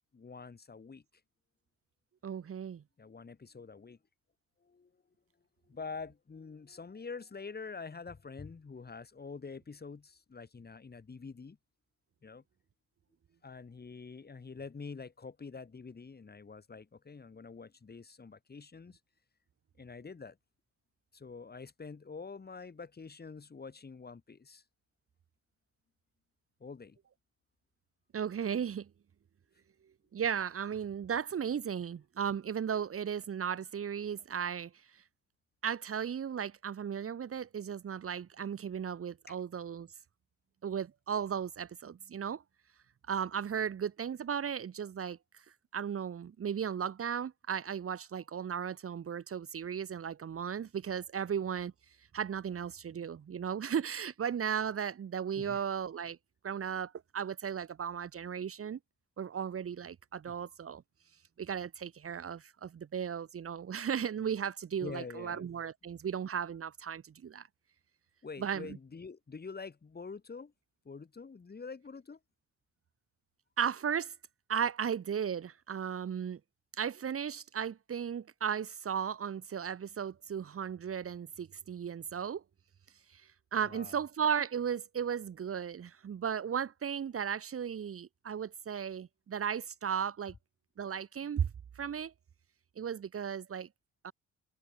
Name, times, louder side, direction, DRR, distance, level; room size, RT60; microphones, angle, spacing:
voice 1, 0.1-1.0 3.0-4.0 4.6-4.9 5.7-11.6 12.2-12.4 13.4-19.0 19.8-20.4 21.1-24.6 26.6-27.0 39.3-39.4 55.4-55.6 60.3-60.4 64.8-65.4 68.2-70.5 70.8-72.2 83.6-84.0, left 4 dB, 30° left, 7.6 m, -46 dB
voice 2, 2.2-2.8 28.1-28.9 30.1-34.7 35.6-39.9 40.6-42.4 43.1-45.2 45.7-51.7 52.1-56.2 56.4-58.8 59.2-60.8 61.4-67.4 68.4-68.8 73.6-74.1 74.5-76.4 76.8-82.4 83.1-83.2 83.5-90.3 90.8-91.5 91.8-92.1 92.8-93.7 94.0-94.1, right 8 dB, 50° right, 2.1 m, -35 dB
cardioid pair, 90°, 30 cm